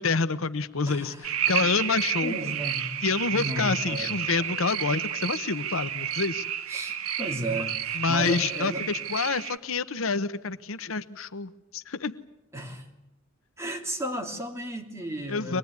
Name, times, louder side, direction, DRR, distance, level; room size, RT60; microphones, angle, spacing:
voice 1, 0.0-2.4 3.0-6.4 8.0-12.2 15.3-15.6, left 4 dB, 70° left, 13 dB, 0.9 m, -28 dB
voice 2, 0.8-1.3 1.6-1.8 2.2-2.9 3.3-4.6 6.7-8.8 12.5-12.9 13.6-15.6, right 1 dB, 15° right, 2 dB, 3.0 m, -34 dB
sound 1, 1.2-9.6, right 9 dB, 90° right, 1.4 m, -31 dB
24.0 x 20.5 x 9.5 m, 0.93 s
head